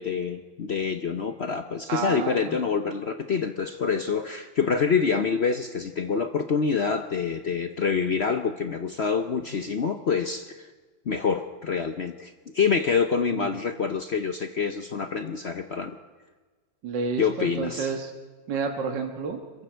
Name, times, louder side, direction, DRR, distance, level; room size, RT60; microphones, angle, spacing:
voice 1, 0.0-10.7 11.1-16.0 17.2-17.9, left 5 dB, 60° left, 7 dB, 0.7 m, -26 dB
voice 2, 1.9-2.6 13.3-13.6 16.8-18.1 18.5-19.4, right 5 dB, 65° right, 3 dB, 2.1 m, -30 dB
26.5 x 22.5 x 4.6 m, 1.4 s
omnidirectional pair, 2.1 m